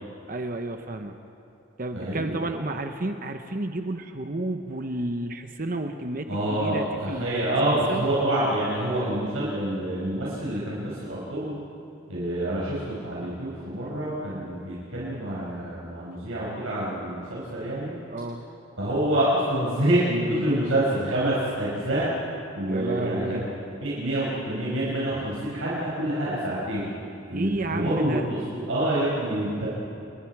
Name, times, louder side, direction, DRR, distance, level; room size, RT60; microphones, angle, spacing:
voice 1, 0.3-1.2 1.8-7.3 7.6-8.1 18.1-18.4 22.7-23.5 27.3-28.3, right 2 dB, 40° right, 6 dB, 0.9 m, -31 dB
voice 2, 1.9-2.4 6.3-11.5 12.1-18.0 18.8-22.1 22.5-23.5 23.8-26.9 27.3-29.7, right 1 dB, 80° right, -7 dB, 5.6 m, -27 dB
30.0 x 22.0 x 4.8 m, 2.7 s
head